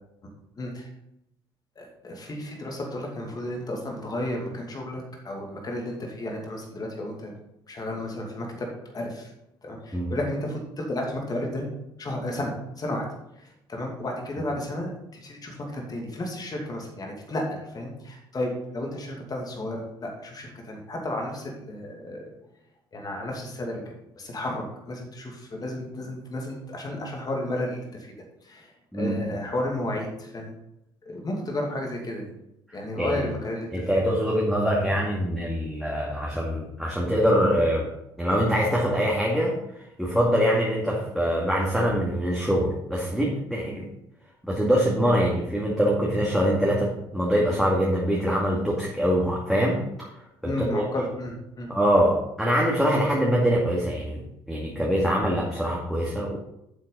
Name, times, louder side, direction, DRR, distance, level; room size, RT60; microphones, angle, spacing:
voice 1, 0.6-0.9 1.8-7.3 7.7-8.7 8.9-9.3 9.6-11.7 12.0-13.0 13.4-22.2 22.9-23.8 24.2-27.9 28.4-30.5 31.1-32.3 32.7-33.7 34.2-34.3 50.4-51.7, left 1 dB, 30° left, 0 dB, 2.6 m, -32 dB
voice 2, 33.0-33.3 33.7-37.9 38.2-39.6 40.0-43.9 44.4-50.1 50.4-50.9 51.7-54.2 54.5-56.4, equal, ahead, -4 dB, 2.2 m, -24 dB
11.0 x 7.5 x 4.1 m, 0.82 s
figure-of-eight pair, 55°, 13 cm